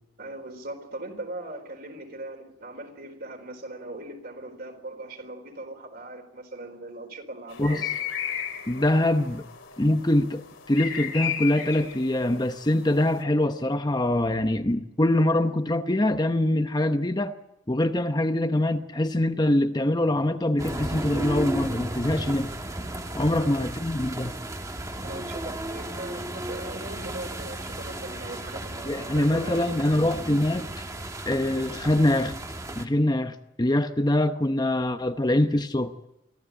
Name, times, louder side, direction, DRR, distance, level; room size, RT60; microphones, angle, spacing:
voice 1, 0.2-7.8 23.3-23.7 25.0-30.1, right 2 dB, 45° right, 4.1 m, -40 dB
sound 1, 7.5-13.2, left 8 dB, 70° left, 3.1 m, -35 dB
voice 2, 7.6-7.9 8.7-9.4 9.8-17.4 17.7-22.5 23.1-24.3 28.9-30.7 31.3-32.4 32.8-36.1, left 1 dB, 20° left, 0.8 m, -24 dB
sound 2, 20.6-32.9, right 1 dB, 15° right, 1.3 m, -34 dB
24.0 x 15.5 x 9.0 m
head